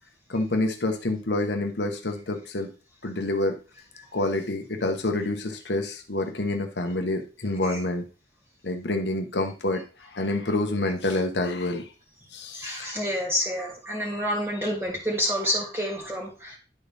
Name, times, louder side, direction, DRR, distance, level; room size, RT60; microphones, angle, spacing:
voice 1, 0.3-2.7 3.0-3.6 4.1-8.0 8.6-11.9 12.3-12.9, left 2 dB, 75° left, 4 dB, 1.0 m, -27 dB
voice 2, 12.5-16.6, equal, 15° right, -3 dB, 2.3 m, -28 dB
10.5 x 4.1 x 3.4 m, 0.34 s
head